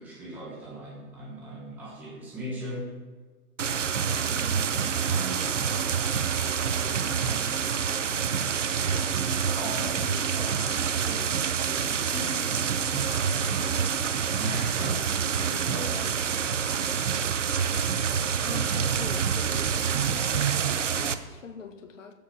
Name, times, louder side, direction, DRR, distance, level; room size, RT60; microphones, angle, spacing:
voice 1, 0.0-3.0 4.1-6.3 6.8-7.9 8.2-13.1 14.3-18.0, right 1 dB, 5° right, 1.1 m, -40 dB
sound 1, 3.6-21.1, right 7 dB, 50° right, 0.8 m, -27 dB
voice 2, 13.4-13.9 18.4-19.8 20.1-22.1, left 5 dB, 50° left, 1.6 m, -42 dB
15.0 x 7.3 x 6.2 m
hypercardioid pair, 165°, 47 cm